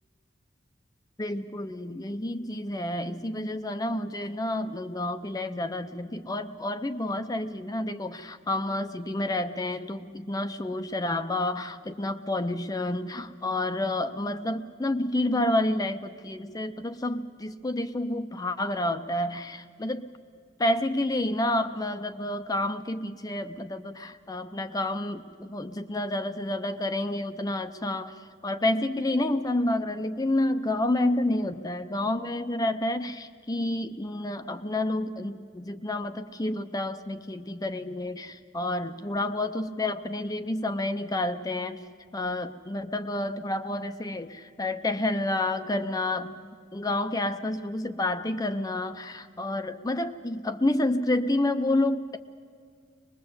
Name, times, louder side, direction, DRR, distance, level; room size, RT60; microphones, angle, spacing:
voice 1, 1.2-20.1 20.6-28.1 28.4-41.8 42.1-46.4 46.7-52.2, left 1 dB, 20° left, 9 dB, 0.6 m, -29 dB
23.5 x 21.0 x 7.9 m, 2.1 s
head